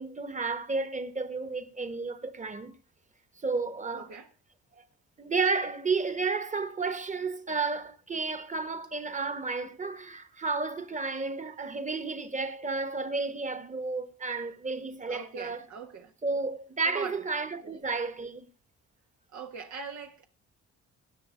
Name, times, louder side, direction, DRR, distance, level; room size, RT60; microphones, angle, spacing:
voice 1, 0.0-2.7 3.4-4.1 4.7-4.8 5.2-15.6 16.2-18.4, right 4 dB, 25° right, 1.5 m, -32 dB
voice 2, 4.0-4.3 13.6-13.8 15.1-16.1 16.8-17.2 17.6-17.8 19.3-20.3, right 5 dB, 70° right, 1.7 m, -42 dB
18.5 x 6.2 x 5.1 m
cardioid pair, 90°, 30 cm